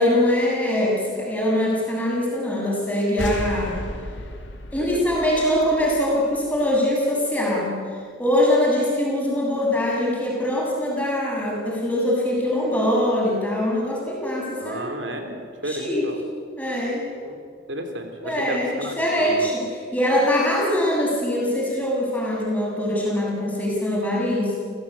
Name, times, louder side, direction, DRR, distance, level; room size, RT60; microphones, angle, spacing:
voice 1, 0.0-3.9 4.7-7.8 8.2-14.9 15.7-16.1 16.6-17.1 18.2-24.7, left 1 dB, 10° left, -4 dB, 7.2 m, -23 dB
sound 1, 3.2-6.7, left 1 dB, 80° left, 2.5 m, -34 dB
voice 2, 14.6-16.2 17.2-17.4 17.7-19.5, right 1 dB, 80° right, 5 dB, 3.1 m, -32 dB
29.5 x 16.0 x 8.6 m, 2.2 s
head